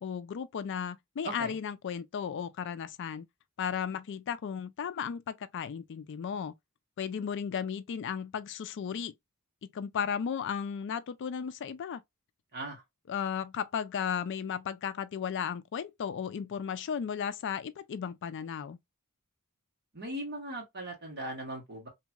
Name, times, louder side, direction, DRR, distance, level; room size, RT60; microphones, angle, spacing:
voice 1, 0.0-3.3 3.6-6.5 7.0-9.1 9.6-12.0 13.1-18.8, left 7 dB, 55° left, 0.3 m, -35 dB
voice 2, 1.2-1.5 12.5-12.8 19.9-21.9, right 1 dB, 50° right, 1.6 m, -39 dB
2.9 x 2.8 x 2.3 m
head